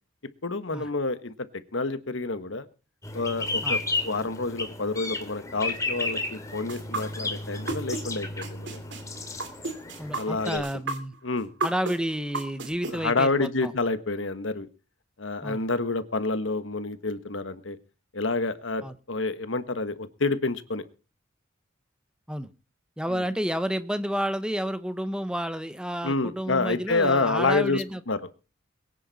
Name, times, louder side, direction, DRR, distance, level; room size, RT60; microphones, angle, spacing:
voice 1, 0.4-1.5 1.7-2.7 3.1-3.8 4.0-8.8 10.2-10.6 11.2-11.5 12.9-14.7 15.2-17.8 18.1-20.8 23.1-23.2 26.0-28.3, left 3 dB, 75° left, 12 dB, 1.3 m, -28 dB
sound 1, 3.0-10.6, left 3 dB, 15° left, 2.6 m, -33 dB
sound 2, 6.7-8.0 8.4-12.9, right 3 dB, 65° right, 2.9 m, -31 dB
voice 2, 10.0-11.1 11.6-13.7 15.4-15.6 18.8-19.0 22.3-22.5 23.0-28.0, equal, 5° right, 11 dB, 0.9 m, -30 dB
22.5 x 9.9 x 4.1 m, 0.35 s
head